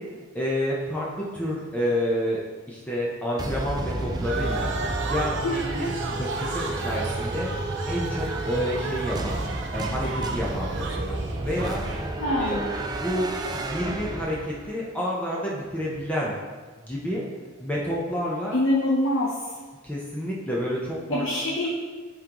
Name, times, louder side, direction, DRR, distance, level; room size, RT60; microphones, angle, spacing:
voice 1, 0.0-2.4 2.7-7.5 7.9-9.4 9.7-11.2 11.4-11.8 12.4-12.6 12.9-16.3 16.8-17.3 17.6-18.6 19.8-21.2, equal, 5° left, -5 dB, 0.7 m, -29 dB
sound 1, 3.4-14.8, right 2 dB, 20° right, 0.3 m, -31 dB
sound 2, 4.2-13.0, right 3 dB, 60° right, 0.6 m, -34 dB
voice 2, 5.4-5.8 12.2-12.6 18.5-19.3 21.1-21.7, left 1 dB, 70° left, -3 dB, 0.8 m, -24 dB
8.2 x 3.8 x 3.0 m, 1.4 s
head